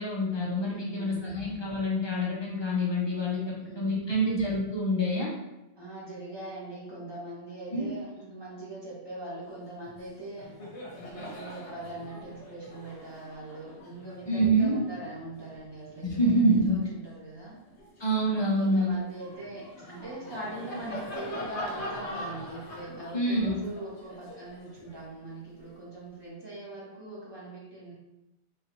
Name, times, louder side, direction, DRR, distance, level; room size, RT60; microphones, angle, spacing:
voice 1, 0.0-5.3 7.7-7.9 14.3-14.8 16.0-16.8 18.0-18.9 23.1-23.6, right 1 dB, 30° left, -4 dB, 0.6 m, -26 dB
voice 2, 0.7-1.3 3.6-4.1 5.7-10.5 10.9-17.5 18.6-27.9, right 2 dB, 25° right, -7 dB, 1.1 m, -41 dB
Laughter, 9.8-10.0 10.3-17.0 17.5-25.7, left 1 dB, 80° left, 1.1 m, -43 dB
3.7 x 2.6 x 2.9 m, 0.94 s
omnidirectional pair, 1.1 m